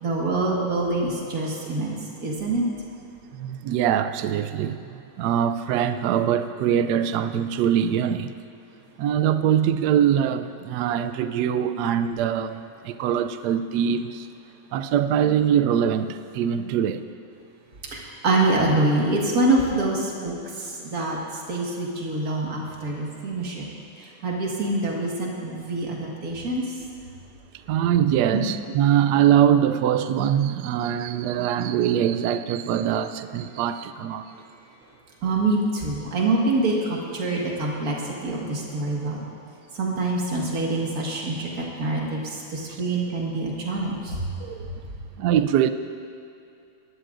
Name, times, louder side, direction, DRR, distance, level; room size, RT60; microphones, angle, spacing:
voice 1, 0.0-2.6 17.9-21.2 21.5-23.6 24.0-26.6 28.3-28.5 35.2-39.2 39.8-41.5 41.8-44.2, right 2 dB, 45° right, -2 dB, 2.2 m, -25 dB
voice 2, 3.3-4.8 5.2-8.3 9.0-12.6 12.8-14.3 14.7-17.0 20.0-20.1 27.7-34.3 41.4-41.5 42.7-42.8 44.4-44.7 45.2-45.7, right 9 dB, 80° right, 11 dB, 0.9 m, -23 dB
20.5 x 12.0 x 2.6 m, 2.7 s
omnidirectional pair, 2.2 m